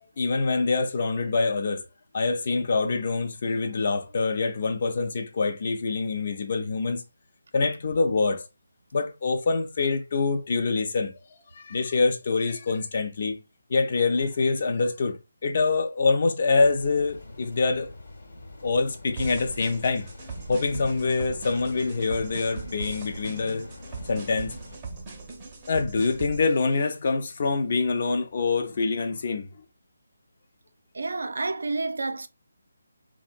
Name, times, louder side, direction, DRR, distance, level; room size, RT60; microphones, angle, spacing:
voice 1, 0.2-1.8 2.1-7.0 7.5-8.5 8.9-11.1 11.6-13.4 13.7-17.9 18.6-20.1 20.5-23.7 24.1-24.5 25.7-29.6, left 4 dB, 45° left, 0.4 m, -25 dB
sound 1, 16.6-24.8, left 2 dB, 70° left, 0.9 m, -45 dB
sound 2, 19.2-26.4, right 3 dB, 20° right, 0.5 m, -39 dB
voice 2, 30.9-32.3, right 3 dB, 75° right, 0.4 m, -29 dB
2.7 x 2.1 x 2.4 m
figure-of-eight pair, 165°, 0 cm